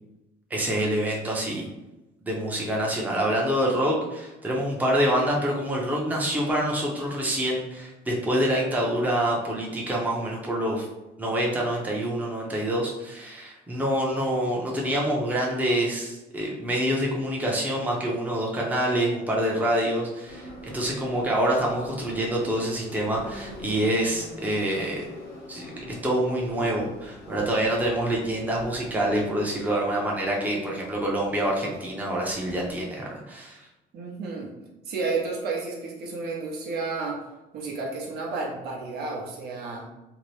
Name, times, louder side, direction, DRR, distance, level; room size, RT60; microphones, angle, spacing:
voice 1, 0.5-1.7 2.2-10.9 11.2-25.1 25.5-33.7, right 1 dB, 10° right, -3 dB, 0.6 m, -26 dB
Subway metro underground, 20.3-32.8, left 1 dB, 70° left, 0.8 m, -44 dB
voice 2, 33.9-34.5 34.8-37.2 37.5-39.8, right 3 dB, 70° right, -1 dB, 0.8 m, -31 dB
2.7 x 2.1 x 3.1 m, 1.0 s
cardioid pair, 110°, 17 cm